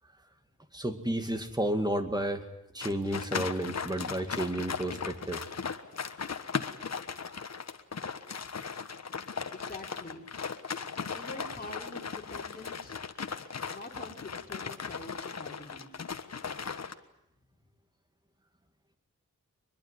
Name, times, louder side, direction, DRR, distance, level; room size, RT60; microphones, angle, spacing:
voice 1, 0.7-2.4 2.7-5.4, right 1 dB, 15° right, 7 dB, 2.3 m, -31 dB
sound 1, 2.8-16.9, left 6 dB, 55° left, 1.4 m, -37 dB
voice 2, 9.5-10.3 11.1-13.0 13.7-16.0, left 2 dB, 30° left, 0 dB, 4.9 m, -45 dB
23.0 x 22.0 x 9.8 m, 0.78 s
wide cardioid pair, 130°, 31 cm